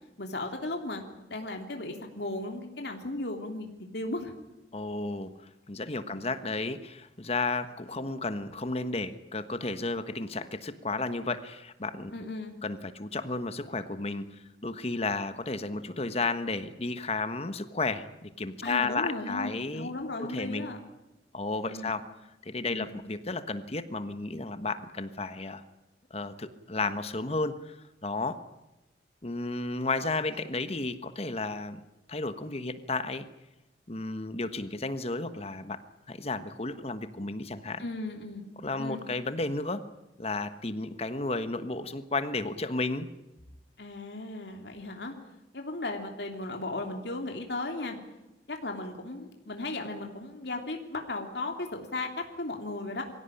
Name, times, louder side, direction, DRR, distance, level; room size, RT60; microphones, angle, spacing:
voice 1, 0.2-1.0 1.3-4.3 6.0-6.2 12.1-12.6 18.6-20.8 21.6-21.9 22.7-22.9 37.8-38.4 38.8-39.0 43.8-45.1 45.5-48.0 48.5-53.0, left 2 dB, 70° left, 3 dB, 3.1 m, -36 dB
voice 2, 4.7-12.1 12.6-19.9 20.2-20.7 21.3-22.0 22.4-25.6 26.1-28.4 29.2-31.8 32.1-33.2 33.9-35.8 36.1-37.8 38.6-39.8 40.2-43.1, left 3 dB, 35° left, 11 dB, 1.3 m, -33 dB
23.5 x 16.5 x 10.0 m, 0.99 s
head